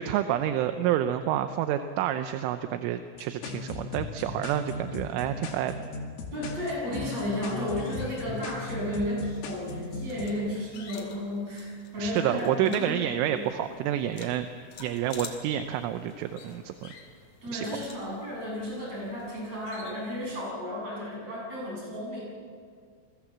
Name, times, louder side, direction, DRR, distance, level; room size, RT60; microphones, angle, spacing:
voice 1, 0.0-5.7 12.0-14.5 14.8-16.9 17.5-17.8, right 11 dB, 80° right, 9 dB, 3.2 m, -29 dB
sound 1, 3.1-10.3, left 3 dB, 80° left, 5.0 m, -37 dB
voice 2, 6.3-13.4 17.4-22.2, left 1 dB, 30° right, -3 dB, 9.1 m, -33 dB
sound 2, 7.1-20.4, left 5 dB, 45° left, 3.1 m, -49 dB
28.5 x 22.5 x 7.5 m, 2.2 s
omnidirectional pair, 5.8 m